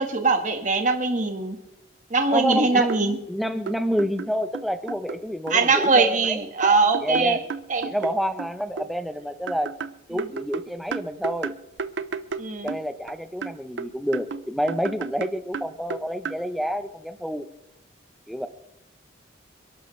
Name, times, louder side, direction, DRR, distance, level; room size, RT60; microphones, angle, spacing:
voice 1, 0.0-1.6 2.1-3.2 5.5-7.4 7.7-7.9 10.1-10.2 12.4-12.7, right 3 dB, 40° right, 5 dB, 1.5 m, -21 dB
sound 1, 2.2-2.3 2.5-3.0 3.7-5.2 5.5-6.0 6.6-8.9 9.5-13.1 13.4-16.4, right 5 dB, 70° right, 0.7 m, -33 dB
voice 2, 2.3-2.9 3.3-6.4 7.0-7.4 7.8-9.7 10.1-11.5 12.6-17.5 18.3-18.5, equal, ahead, 8 dB, 0.8 m, -28 dB
26.5 x 11.5 x 3.3 m, 0.85 s
head